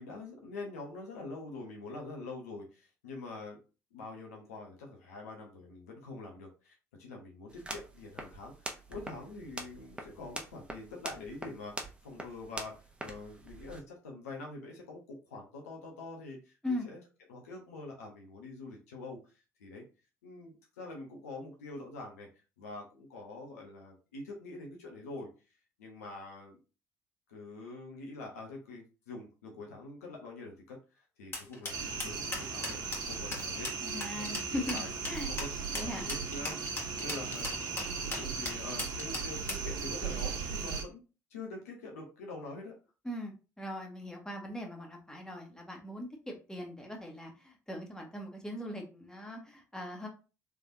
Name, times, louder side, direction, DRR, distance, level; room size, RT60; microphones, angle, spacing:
voice 1, 0.0-3.6 3.9-12.7 13.0-17.0 17.3-19.3 19.6-19.8 20.2-22.3 22.6-25.3 25.8-26.6 27.3-33.7 34.2-41.0 41.3-42.7, left 2 dB, 80° left, -1 dB, 0.9 m, -45 dB
sound 1, 7.5-13.8, right 1 dB, 10° right, 1.0 m, -44 dB
sound 2, 31.3-39.7, left 2 dB, 30° left, 1.6 m, -38 dB
sound 3, 31.7-40.8, right 5 dB, 55° right, 0.9 m, -37 dB
voice 2, 33.8-34.8 35.1-35.3 35.7-36.2 43.0-50.1, left 1 dB, 10° left, 1 dB, 1.4 m, -40 dB
3.4 x 3.3 x 2.7 m, 0.32 s
figure-of-eight pair, 50°, 8 cm